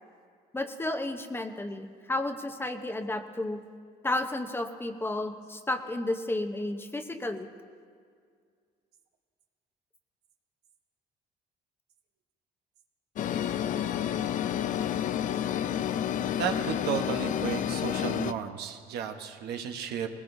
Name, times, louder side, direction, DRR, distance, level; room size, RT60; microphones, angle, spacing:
voice 1, 0.5-3.6 4.0-7.5, left 2 dB, 15° left, 7 dB, 0.8 m, -32 dB
sound 1, 13.2-18.3, left 10 dB, 50° left, 0.4 m, -30 dB
voice 2, 16.4-20.1, right 8 dB, 75° right, 5 dB, 1.1 m, -33 dB
19.5 x 18.0 x 2.7 m, 2.1 s
cardioid pair, 110°, 17 cm